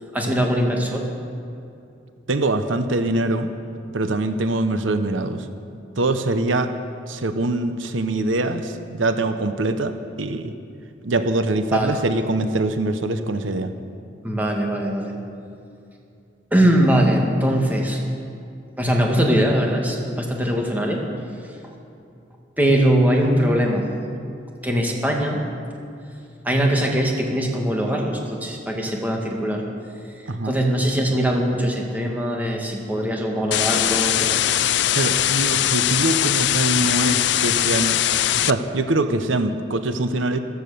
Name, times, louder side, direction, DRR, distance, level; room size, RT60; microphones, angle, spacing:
voice 1, 0.1-1.1 11.7-12.0 14.2-15.1 16.5-18.0 18.8-21.0 22.6-23.8 24.6-25.4 26.4-29.6 30.4-34.4 37.0-37.1, equal, 10° right, 0 dB, 1.8 m, -21 dB
voice 2, 2.3-3.5 3.9-5.5 6.0-6.7 7.1-10.5 11.0-13.7 30.3-30.6 34.9-38.0 38.4-40.4, right 2 dB, 85° right, 9 dB, 0.9 m, -23 dB
sound 1, 33.5-38.5, left 12 dB, 65° left, 0.4 m, -20 dB
14.5 x 14.5 x 6.8 m, 2.6 s
head